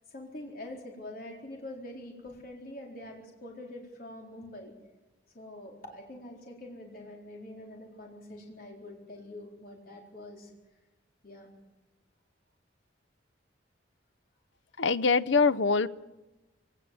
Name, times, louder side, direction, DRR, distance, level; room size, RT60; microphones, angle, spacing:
voice 1, 0.1-4.7 5.3-10.5 11.2-11.5, left 1 dB, 50° left, 0 dB, 4.2 m, -45 dB
voice 2, 14.8-15.9, left 4 dB, 75° left, 16 dB, 0.7 m, -24 dB
22.0 x 18.5 x 7.8 m, 1.1 s
head